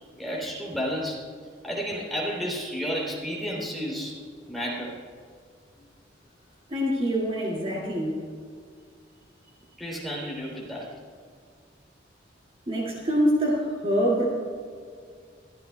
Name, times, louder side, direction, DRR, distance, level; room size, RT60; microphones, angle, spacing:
voice 1, 0.2-1.2 1.6-4.1 4.5-5.0 9.8-10.9, equal, ahead, -4 dB, 3.1 m, -31 dB
voice 2, 6.7-8.2 12.7-14.2, equal, 30° right, -4 dB, 2.3 m, -25 dB
23.0 x 13.5 x 2.3 m, 2.1 s
head